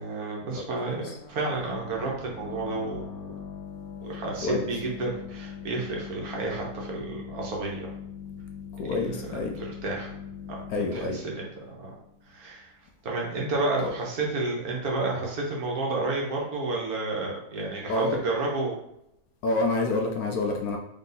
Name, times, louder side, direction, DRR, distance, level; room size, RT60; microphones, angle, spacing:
voice 1, 0.0-3.1 4.0-7.9 8.9-10.1 10.8-12.0 12.3-12.8 13.0-18.8, right 2 dB, 65° right, -2 dB, 1.3 m, -31 dB
sound 1, 1.2-12.6, left 7 dB, 90° left, 1.3 m, -41 dB
voice 2, 8.7-9.6 10.7-11.2 13.8-13.9 17.9-18.2 19.4-20.8, left 2 dB, 70° left, 3 dB, 1.0 m, -27 dB
3.7 x 2.7 x 3.8 m, 0.80 s
omnidirectional pair, 1.8 m